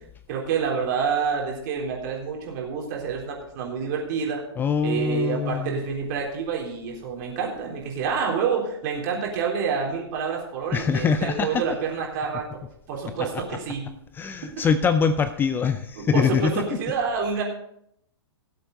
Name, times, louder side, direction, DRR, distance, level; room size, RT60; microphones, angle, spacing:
voice 1, 0.3-4.4 4.8-12.5 12.9-13.9 16.0-17.4, right 6 dB, 45° right, -1 dB, 3.6 m, -28 dB
voice 2, 4.6-5.8 10.7-11.6 14.1-16.5, left 6 dB, 15° left, 12 dB, 0.4 m, -23 dB
18.0 x 7.8 x 3.9 m, 0.73 s
figure-of-eight pair, 115°, 14 cm